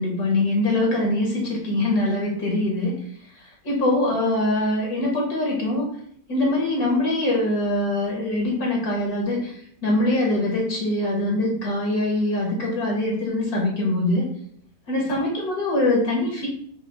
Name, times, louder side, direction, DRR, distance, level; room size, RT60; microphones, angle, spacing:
voice 1, 0.0-2.9 3.6-5.9 6.3-9.5 9.8-14.3 14.9-16.5, left 1 dB, 65° left, -1 dB, 1.7 m, -23 dB
4.8 x 2.7 x 4.0 m, 0.65 s
omnidirectional pair, 1.8 m